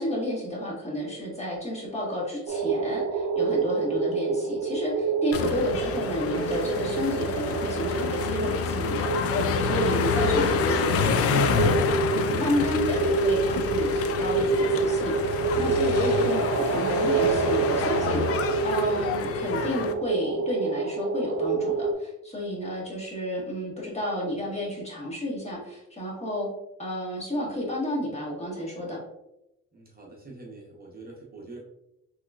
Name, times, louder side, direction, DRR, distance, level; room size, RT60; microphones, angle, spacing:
voice 1, 0.0-26.5 26.8-29.0, left 1 dB, 20° left, -4 dB, 1.4 m, -31 dB
sound 1, 2.5-21.9, right 4 dB, 65° right, 0.6 m, -27 dB
sound 2, 5.3-19.9, left 6 dB, 50° left, 0.4 m, -28 dB
voice 2, 29.7-31.6, right 2 dB, 30° right, -2 dB, 0.8 m, -45 dB
3.6 x 3.1 x 2.3 m, 0.88 s
cardioid pair, 90°, 30 cm